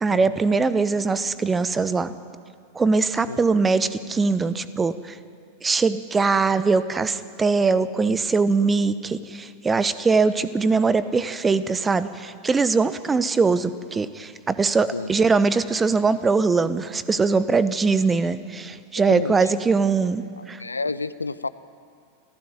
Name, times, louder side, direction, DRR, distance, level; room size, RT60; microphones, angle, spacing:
voice 1, 0.0-2.1 2.7-5.2 5.6-20.6, right 4 dB, 15° right, 15 dB, 1.0 m, -22 dB
voice 2, 19.1-19.5 20.4-21.5, left 3 dB, 80° left, 16 dB, 0.7 m, -30 dB
28.0 x 14.5 x 9.2 m, 2.2 s
figure-of-eight pair, 90°, 0 cm